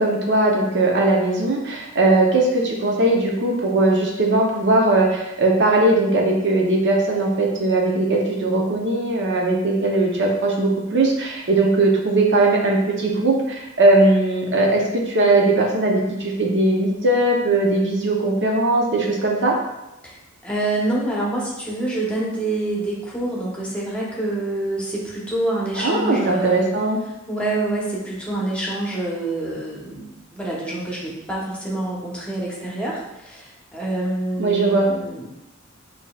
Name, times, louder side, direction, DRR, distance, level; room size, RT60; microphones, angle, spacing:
voice 1, 0.0-19.5 25.8-27.0 34.4-34.9, right 2 dB, 60° right, 0 dB, 0.7 m, -19 dB
voice 2, 20.4-26.7 27.3-35.3, right 2 dB, 5° left, -5 dB, 0.9 m, -26 dB
6.7 x 2.8 x 2.3 m, 0.93 s
head